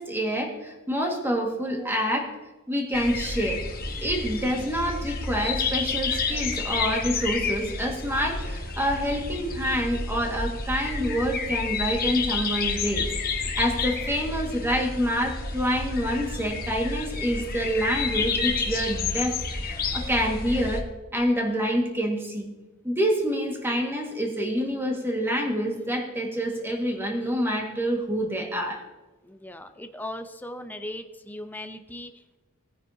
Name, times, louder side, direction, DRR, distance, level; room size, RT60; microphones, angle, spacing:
voice 1, 0.0-2.3 2.7-3.6 4.0-13.1 13.6-19.4 19.6-22.5 22.8-28.8, equal, 10° right, 1 dB, 1.8 m, -27 dB
sound 1, 2.9-20.8, left 4 dB, 45° left, 1.3 m, -30 dB
voice 2, 29.2-32.4, left 1 dB, 10° left, 8 dB, 0.6 m, -38 dB
18.5 x 9.4 x 2.8 m, 1.1 s
head